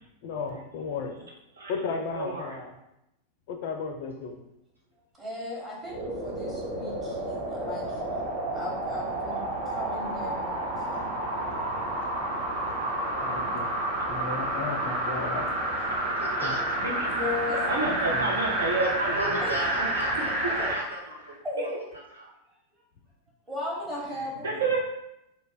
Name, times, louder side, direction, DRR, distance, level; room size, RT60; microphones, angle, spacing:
voice 1, 0.2-1.1 1.7-2.7 3.5-4.4 13.2-13.7 14.1-15.5 16.4-16.6 18.1-18.2, left 5 dB, 50° left, 5 dB, 0.4 m, -34 dB
voice 2, 1.6-2.6 16.8-17.2 17.5-19.4 20.7-20.8 21.6-21.7 24.4-24.8, right 2 dB, 65° right, -1 dB, 0.6 m, -30 dB
voice 3, 5.2-8.0 8.5-11.1 11.7-11.8 12.6-12.7 13.3-13.5 17.1-17.6 19.4-19.5 20.4-20.7 21.4-21.7 23.5-24.6, left 2 dB, 15° right, -5 dB, 1.1 m, -37 dB
sound 1, 5.8-20.8 21.3-21.4, right 1 dB, 50° right, 1.2 m, -30 dB
voice 4, 16.2-16.7 17.8-18.0 18.8-21.3 21.6-21.7 22.1-22.3, right 2 dB, 85° right, -6 dB, 0.9 m, -35 dB
2.4 x 2.1 x 3.8 m, 0.86 s
figure-of-eight pair, 90°, 0 cm